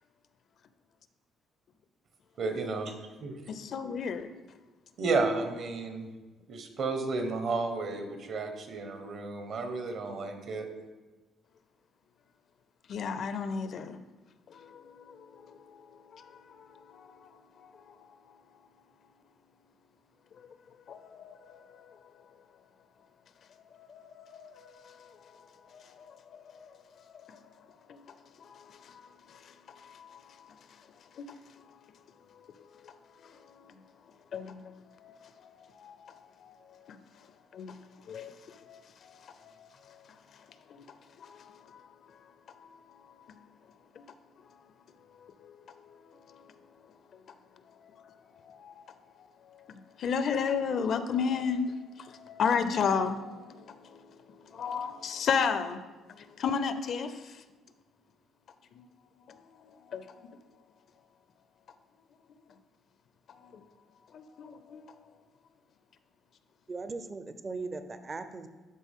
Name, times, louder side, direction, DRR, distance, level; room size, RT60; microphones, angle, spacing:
voice 1, 2.4-2.9 3.2-3.4 5.0-6.1 6.5-10.7, right 3 dB, 60° right, 6 dB, 1.2 m, -32 dB
voice 2, 3.5-4.3 12.9-14.0 14.5-15.9 16.1-16.3 16.6-17.3 17.6-18.1 20.9-21.9 23.8-25.1 25.7-26.7 27.2-27.4 27.9-28.0 28.4-28.9 29.8-30.2 31.2-31.3 32.8-32.9 33.2-33.3 34.3-34.6 35.0-36.5 36.9-37.0 37.5-37.8 38.1-39.7 40.7-40.8 41.2-41.6 44.0-44.1 45.2-45.6 46.3-46.4 48.4-48.8 50.0-54.0 54.5-55.8 56.2-57.3 59.9-60.0 63.5-63.6 64.1-64.9, left 6 dB, 60° left, 11 dB, 0.5 m, -34 dB
voice 3, 66.7-68.5, right 3 dB, 30° right, 9 dB, 0.5 m, -38 dB
12.0 x 4.0 x 3.7 m, 1.3 s
cardioid pair, 95°, 0 cm